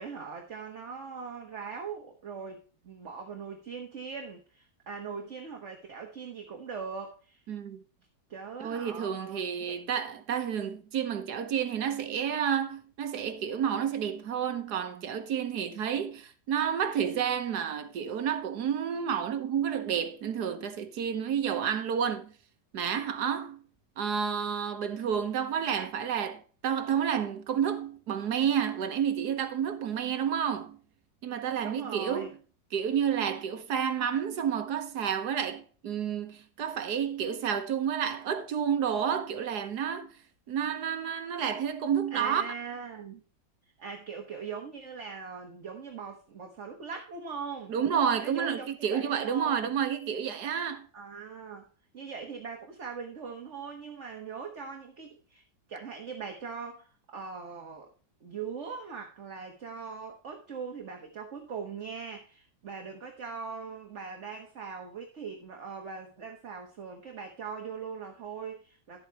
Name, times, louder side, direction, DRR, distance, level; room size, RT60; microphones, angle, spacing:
voice 1, 0.0-7.4 8.3-9.8 31.6-32.3 42.1-43.2 43.8-47.7 48.2-49.7 50.9-51.7 51.9-55.4 55.7-57.9 58.2-69.0, right 5 dB, 45° right, 1.5 m, -41 dB
voice 2, 7.5-7.8 8.6-22.3 22.7-23.7 24.0-30.8 31.2-32.4 32.7-40.1 40.5-42.5 47.7-50.9, right 8 dB, 65° right, 1.5 m, -30 dB
11.5 x 8.0 x 2.9 m
omnidirectional pair, 1.9 m